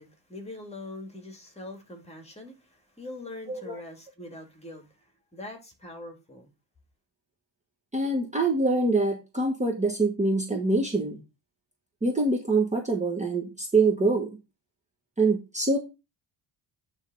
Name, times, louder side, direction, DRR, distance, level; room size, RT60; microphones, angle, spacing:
voice 1, 0.0-5.1 5.3-6.5, left 2 dB, 15° left, 2.1 m, -43 dB
voice 2, 3.5-3.8 7.9-11.2 12.0-14.3 15.2-15.8, right 3 dB, 15° right, 1.2 m, -25 dB
9.0 x 3.6 x 5.2 m
cardioid pair, 135°, 45 cm